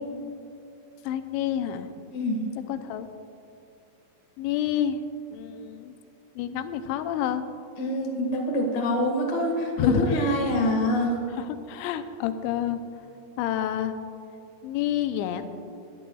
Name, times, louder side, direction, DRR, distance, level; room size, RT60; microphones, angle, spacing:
voice 1, 1.1-1.9 2.7-3.1 4.4-5.0 5.3-5.9 6.4-7.4 9.8-10.2 11.4-12.8 13.4-14.0 14.6-15.5, left 10 dB, 90° left, 9 dB, 2.9 m, -28 dB
voice 2, 2.1-2.4 7.8-11.2, equal, 60° left, 0 dB, 1.2 m, -25 dB
20.0 x 11.5 x 2.3 m, 2.6 s
omnidirectional pair, 5.1 m